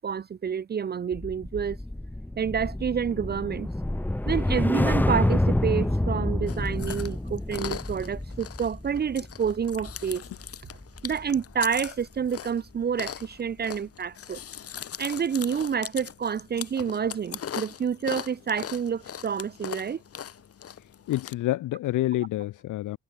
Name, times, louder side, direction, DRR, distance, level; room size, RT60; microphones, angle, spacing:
voice 1, 0.0-1.8 2.4-3.7 4.3-10.2 11.0-14.4 15.0-20.0, right 7 dB, 35° right, 0.6 m, -28 dB
sound 1, 1.1-11.5 11.9-12.2, left 1 dB, 5° left, 1.1 m, -28 dB
Chewing mastication, 6.5-21.3, left 9 dB, 50° left, 1.7 m, -40 dB
voice 2, 21.1-23.0, left 15 dB, 85° left, 2.1 m, -28 dB
cardioid pair, 90°, 30 cm